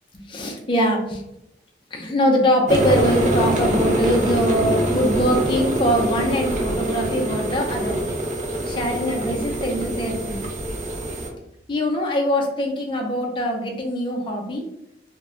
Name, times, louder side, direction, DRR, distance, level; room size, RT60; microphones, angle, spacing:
voice 1, 0.3-1.2 1.9-8.0 8.7-10.4 11.7-14.6, equal, 25° left, 1 dB, 0.5 m, -22 dB
sound 1, 2.7-11.3, right 1 dB, 40° right, 0.4 m, -24 dB
2.2 x 2.0 x 3.6 m, 0.83 s
head